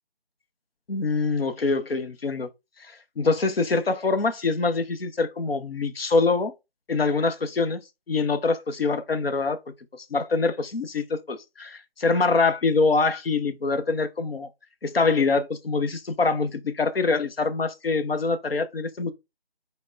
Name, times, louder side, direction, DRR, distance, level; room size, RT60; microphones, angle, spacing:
voice 1, 0.9-2.5 2.8-6.5 6.9-7.8 8.1-9.6 10.1-14.5 14.8-19.1, left 4 dB, 65° left, 0.7 m, -24 dB
5.1 x 2.1 x 2.4 m
figure-of-eight pair, 170°, 32 cm